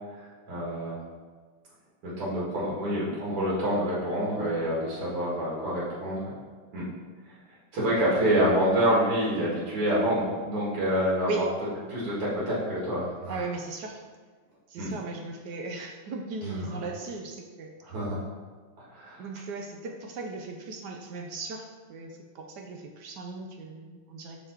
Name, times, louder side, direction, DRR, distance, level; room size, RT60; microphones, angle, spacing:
voice 1, 0.1-1.0 2.0-6.3 6.7-6.8 7.7-11.4 11.9-13.4 14.8-14.9 16.4-16.8 17.8-18.2 18.9-19.2, equal, 85° right, -7 dB, 3.1 m, -27 dB
voice 2, 13.3-14.0 14.7-17.7 19.2-24.4, right 3 dB, 65° right, 2 dB, 1.1 m, -37 dB
5.6 x 5.3 x 4.7 m, 1.5 s
omnidirectional pair, 2.4 m